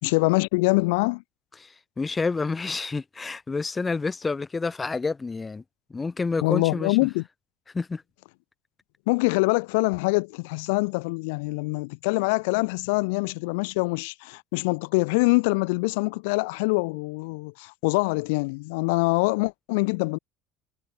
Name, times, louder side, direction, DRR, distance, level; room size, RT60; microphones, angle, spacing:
voice 1, 0.0-1.2 6.4-7.2 9.1-20.2, left 28 dB, 85° left, 1.4 m, -24 dB
voice 2, 1.6-5.6 5.9-7.0 7.7-8.0, left 4 dB, 20° left, 1.0 m, -29 dB
supercardioid pair, 95°, 0 cm